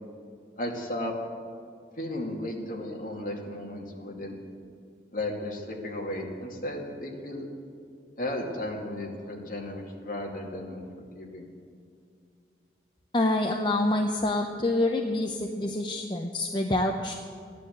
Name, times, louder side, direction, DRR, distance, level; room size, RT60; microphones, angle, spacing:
voice 1, 0.6-1.1 2.0-4.3 5.1-7.5 8.2-10.8 11.1-11.5, left 1 dB, 50° left, -1 dB, 2.4 m, -34 dB
voice 2, 13.1-17.1, left 2 dB, 25° left, 2 dB, 0.7 m, -26 dB
15.0 x 11.0 x 8.1 m, 2.3 s
head